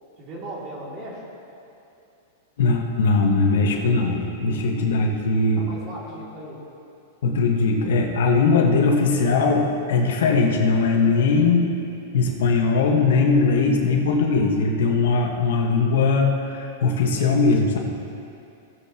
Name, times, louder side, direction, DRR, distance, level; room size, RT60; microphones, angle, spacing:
voice 1, 0.2-1.2 5.6-6.6, right 1 dB, 35° right, -4 dB, 2.7 m, -37 dB
voice 2, 2.6-5.7 7.2-11.6 12.1-17.8, left 4 dB, 80° left, 1 dB, 1.5 m, -20 dB
17.5 x 7.8 x 3.0 m, 2.7 s
supercardioid pair, 155°, 0 cm